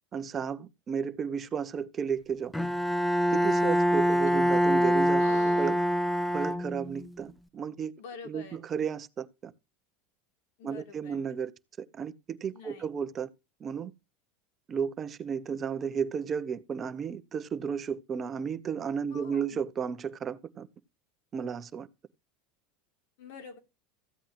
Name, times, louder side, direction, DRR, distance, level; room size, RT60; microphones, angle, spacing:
voice 1, 0.1-2.5 3.3-5.2 5.6-5.8 6.3-7.9 8.2-9.5 10.6-11.5 11.8-13.3 13.6-13.9 14.7-20.7 21.3-21.9, right 7 dB, 35° right, 1.0 m, -33 dB
Bowed string instrument, 2.5-7.1, equal, 5° left, 0.6 m, -25 dB
voice 2, 5.1-5.7 8.0-8.6 10.6-11.2 12.5-12.9 19.1-19.6 23.2-23.6, left 6 dB, 75° left, 3.6 m, -46 dB
15.0 x 8.2 x 3.2 m
hypercardioid pair, 100°, 0 cm